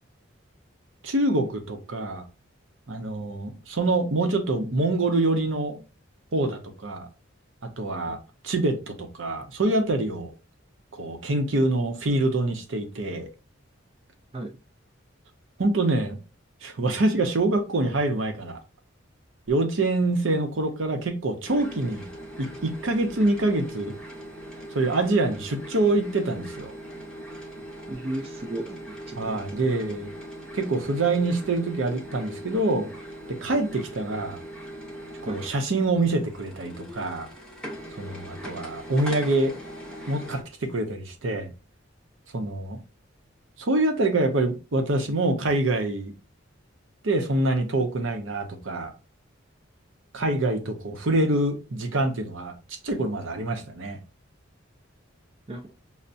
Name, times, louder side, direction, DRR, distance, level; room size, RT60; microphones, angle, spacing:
voice 1, 1.0-2.2 2.9-5.8 6.3-7.1 7.6-8.2 8.4-10.3 10.9-13.3 15.6-16.2 16.6-18.6 19.5-22.1 22.4-24.0 24.7-26.7 29.2-30.1 30.5-32.9 33.3-34.4 35.2-37.3 38.0-39.5 40.1-41.5 42.3-42.8 43.6-46.1 47.0-48.9 50.1-52.6 52.8-54.0, right 2 dB, 75° right, 0.7 m, -25 dB
sound 1, 21.4-40.4, equal, 5° left, 0.7 m, -40 dB
voice 2, 27.9-28.8 29.1-29.6 35.3-35.4 55.5-55.7, right 1 dB, 30° right, 0.4 m, -34 dB
5.5 x 2.1 x 2.5 m
head